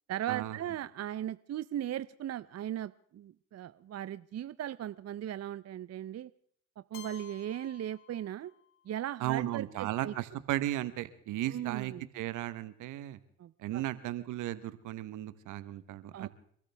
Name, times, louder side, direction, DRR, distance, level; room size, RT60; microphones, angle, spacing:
voice 1, 0.1-6.3 6.9-8.5 8.8-10.1 11.5-12.0 13.4-13.8 16.1-16.3, right 11 dB, 55° right, 14 dB, 0.7 m, -38 dB
Keyboard (musical), 6.9-8.9, left 11 dB, 85° left, 1.4 m, -53 dB
voice 2, 9.2-13.2 13.6-16.3, right 14 dB, 80° right, 14 dB, 1.2 m, -35 dB
29.0 x 13.5 x 3.5 m, 0.62 s
supercardioid pair, 55°, 30 cm